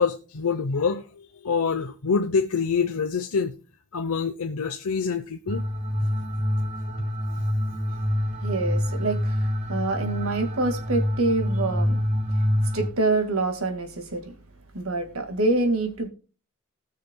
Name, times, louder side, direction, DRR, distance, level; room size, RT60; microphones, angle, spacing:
voice 1, 0.0-3.5 3.9-5.6, left 5 dB, 80° left, 0.8 m, -26 dB
sound 1, 5.5-12.9, equal, 30° right, 1.8 m, -26 dB
voice 2, 8.4-12.1 12.3-12.5 12.7-14.3 14.7-16.1, right 2 dB, 70° right, 2.0 m, -26 dB
19.5 x 6.8 x 2.2 m
head